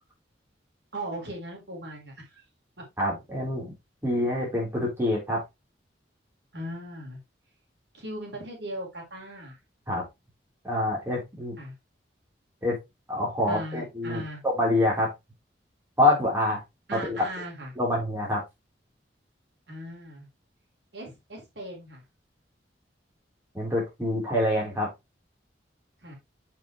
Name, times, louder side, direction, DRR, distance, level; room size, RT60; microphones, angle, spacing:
voice 1, 0.9-2.4 6.5-7.2 7.9-9.5 11.6-11.7 13.5-14.4 16.9-17.7 19.7-20.3 20.9-22.0 26.0-26.1, right 1 dB, 75° right, 0 dB, 3.9 m, -38 dB
voice 2, 3.0-3.7 4.0-5.4 9.9-10.0 10.6-11.6 12.6-12.8 13.1-15.1 16.0-16.6 16.9-17.3 17.8-18.4 23.5-24.9, left 1 dB, 15° right, -4 dB, 3.9 m, -26 dB
7.0 x 6.8 x 3.2 m, 0.21 s
head